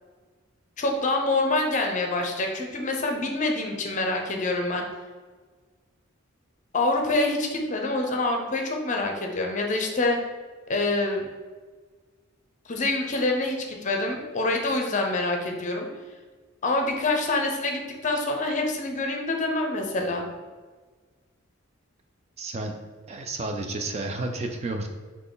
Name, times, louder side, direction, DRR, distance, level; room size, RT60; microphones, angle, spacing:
voice 1, 0.8-4.9 6.7-10.2 10.7-11.3 12.7-15.9 16.6-20.3, left 2 dB, 40° left, 2 dB, 0.6 m, -26 dB
voice 2, 22.4-22.8 23.1-24.9, right 2 dB, 30° right, 5 dB, 0.4 m, -31 dB
4.0 x 3.2 x 3.9 m, 1.4 s
head